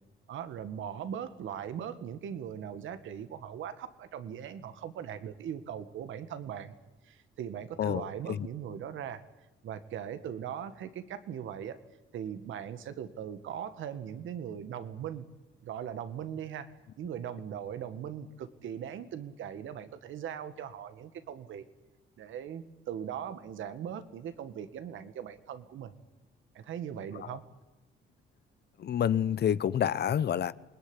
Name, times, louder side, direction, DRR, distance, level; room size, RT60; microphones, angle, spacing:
voice 1, 0.3-6.7 7.0-9.2 9.6-11.8 12.1-15.3 15.6-21.6 22.2-25.9 26.5-27.5, right 9 dB, 75° right, 2.0 m, -40 dB
voice 2, 7.8-8.5 27.2-27.4 28.8-30.5, left 9 dB, 55° left, 0.9 m, -28 dB
27.0 x 20.5 x 10.0 m
cardioid pair, 90°, 20 cm